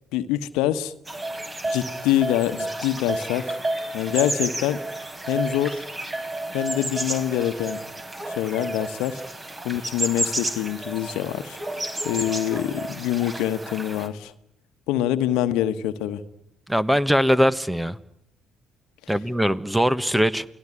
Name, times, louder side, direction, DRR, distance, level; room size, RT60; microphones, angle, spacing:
voice 1, 0.1-0.9 1.7-3.5 3.9-4.8 5.3-5.8 6.5-7.8 8.3-9.2 9.6-11.6 12.0-14.3 14.9-16.2, left 12 dB, 75° left, 11 dB, 1.2 m, -25 dB
sound 1, 1.0-14.1, right 1 dB, 25° right, 4.1 m, -31 dB
voice 2, 16.7-18.0 19.1-20.5, equal, 5° right, 16 dB, 1.4 m, -21 dB
29.0 x 19.5 x 9.9 m, 0.78 s
hypercardioid pair, 50°, 0 cm